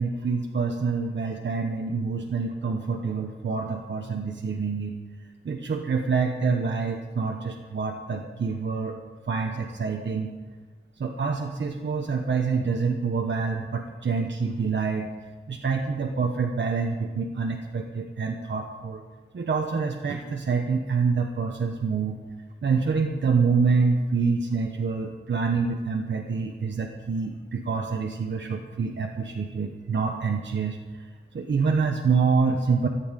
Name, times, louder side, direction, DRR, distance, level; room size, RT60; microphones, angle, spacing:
voice 1, 0.0-5.0 5.4-9.0 9.3-10.3 11.0-15.1 15.5-19.0 19.3-22.2 22.6-30.8 31.3-32.9, right 5 dB, 75° right, 1 dB, 1.2 m, -26 dB
14.0 x 9.7 x 8.2 m, 1.3 s
wide cardioid pair, 115°, 19 cm